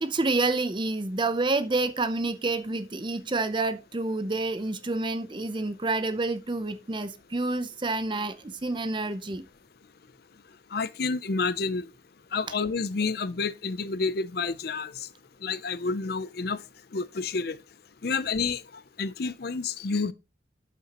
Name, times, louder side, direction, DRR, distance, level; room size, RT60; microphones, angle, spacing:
voice 1, 0.0-9.5, right 2 dB, 25° right, 0.6 m, -28 dB
voice 2, 10.7-11.9 12.3-14.9 15.4-16.6 16.9-17.6 18.0-18.6 19.0-20.1, left 4 dB, 55° left, 0.5 m, -29 dB
12.5 x 5.6 x 3.0 m
head